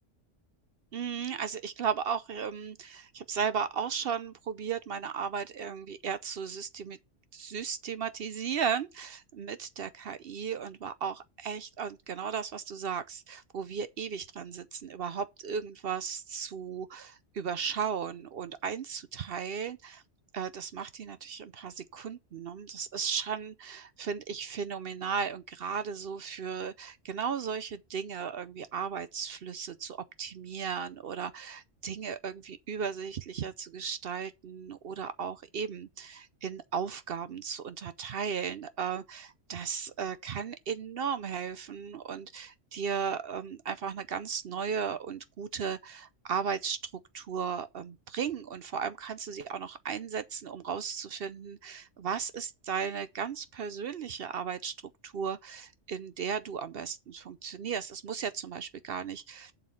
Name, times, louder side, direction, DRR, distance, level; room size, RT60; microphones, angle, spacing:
voice 1, 0.9-7.0 7.3-20.0 20.3-54.7 55.0-59.6, right 6 dB, 60° right, 0.7 m, -35 dB
7.6 x 6.4 x 5.6 m
omnidirectional pair, 1.3 m